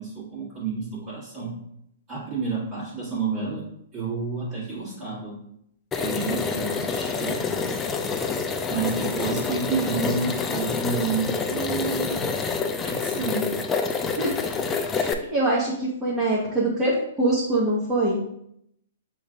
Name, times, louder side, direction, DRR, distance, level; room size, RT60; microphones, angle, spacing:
voice 1, 0.0-1.6 2.1-5.4 5.9-7.9 8.7-12.5 12.8-13.6, right 4 dB, 35° right, -10 dB, 1.7 m, -30 dB
sound 1, 5.9-15.1, left 5 dB, 15° left, 0.4 m, -27 dB
voice 2, 14.9-18.2, right 2 dB, 15° right, -9 dB, 1.2 m, -24 dB
6.3 x 3.1 x 2.5 m, 0.74 s
hypercardioid pair, 135°, 0 cm